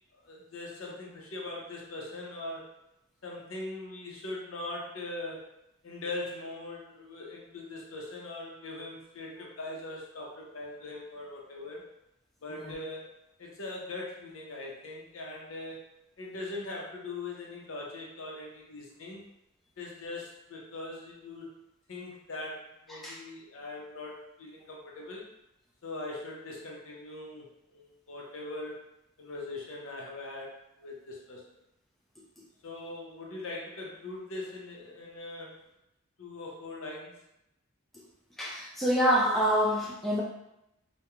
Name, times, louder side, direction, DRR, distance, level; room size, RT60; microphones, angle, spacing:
voice 1, 0.2-2.7 3.2-5.5 5.8-11.8 12.4-15.8 16.2-19.2 19.8-21.6 21.9-25.2 25.8-28.8 29.2-31.4 32.6-35.6 36.2-37.2, left 2 dB, 75° left, -2 dB, 0.6 m, -41 dB
voice 2, 38.4-40.2, equal, ahead, -6 dB, 0.4 m, -27 dB
2.3 x 2.2 x 2.9 m, 0.86 s
head